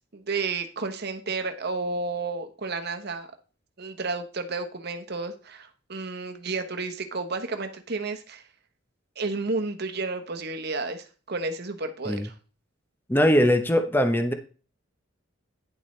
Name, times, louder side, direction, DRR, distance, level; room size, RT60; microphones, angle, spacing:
voice 1, 0.1-3.3 3.8-8.4 9.2-12.3, right 3 dB, 50° right, 7 dB, 1.1 m, -31 dB
voice 2, 13.1-14.3, equal, 10° left, 7 dB, 0.9 m, -21 dB
10.0 x 7.2 x 3.2 m, 0.37 s
head